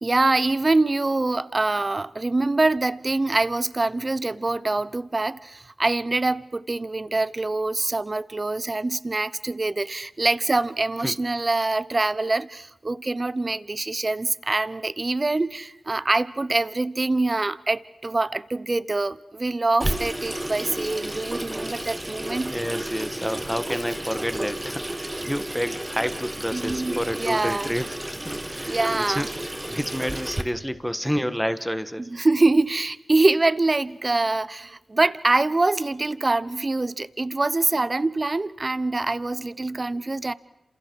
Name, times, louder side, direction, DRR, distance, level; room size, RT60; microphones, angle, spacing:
voice 1, 0.0-22.5 26.5-26.9 27.2-27.7 28.7-29.3 32.1-40.3, right 2 dB, 35° right, 18 dB, 0.8 m, -24 dB
Water tap faucet / Sink (filling or washing), 19.8-30.4, right 1 dB, 15° right, 1.8 m, -32 dB
voice 2, 22.4-28.0 28.2-32.1, equal, ahead, 11 dB, 1.7 m, -29 dB
29.0 x 27.0 x 4.8 m, 0.85 s
cardioid pair, 45°, 0 cm